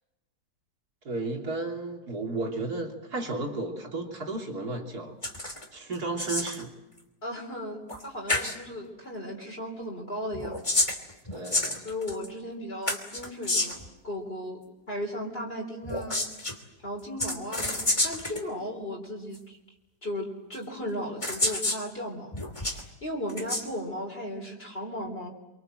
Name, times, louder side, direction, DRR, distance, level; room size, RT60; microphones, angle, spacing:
voice 1, 1.1-5.2 5.7-6.7 11.3-11.8, right 3 dB, 60° right, 1 dB, 3.6 m, -33 dB
sound 1, 5.2-5.7 5.9-6.6 7.9-8.0 8.3-8.6 10.3-12.3 12.9-13.9 15.8-16.6 17.2-18.4 19.3-19.4 20.5-20.6 21.2-21.8 22.3-22.8 23.3-23.6, left 2 dB, 15° left, 2.8 m, -29 dB
voice 2, 7.2-10.7 11.8-14.6 14.9-16.3 16.8-19.6 20.0-22.4 22.6-25.3, left 1 dB, 35° left, -1 dB, 3.8 m, -36 dB
27.5 x 24.0 x 7.7 m, 1.1 s
omnidirectional pair, 1.9 m